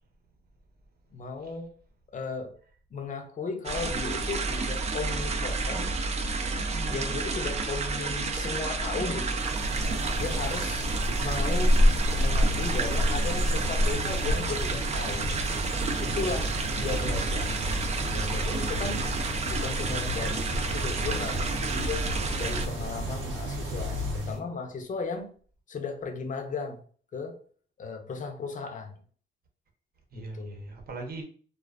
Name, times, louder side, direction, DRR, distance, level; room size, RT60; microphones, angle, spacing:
voice 1, 1.1-1.7 2.1-2.6 2.9-5.9 6.9-9.5 10.2-10.9 11.2-11.8 12.2-15.5 16.0-17.6 18.1-19.1 19.5-22.1 22.4-25.3 25.7-26.8 27.1-27.4 27.8-29.0 30.1-30.6, left 4 dB, 40° left, 0.6 m, -35 dB
sound 1, 3.6-22.7, right 3 dB, 35° right, 0.4 m, -31 dB
voice 2, 6.6-7.1 30.1-31.2, right 3 dB, 50° right, 0.8 m, -41 dB
sound 2, 9.3-24.4, equal, 90° right, 0.7 m, -29 dB
2.4 x 2.2 x 2.3 m
cardioid pair, 90°, 20 cm